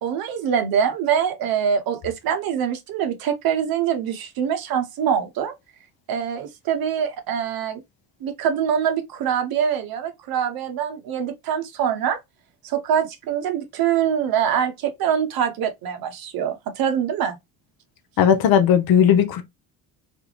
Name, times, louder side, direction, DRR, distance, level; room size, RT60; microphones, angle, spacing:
voice 1, 0.0-5.5 6.1-7.8 8.2-12.2 12.6-17.4, right 8 dB, 50° right, 0.7 m, -24 dB
voice 2, 18.2-19.4, left 8 dB, 50° left, 0.6 m, -16 dB
2.5 x 2.1 x 2.8 m
hypercardioid pair, 60°, 46 cm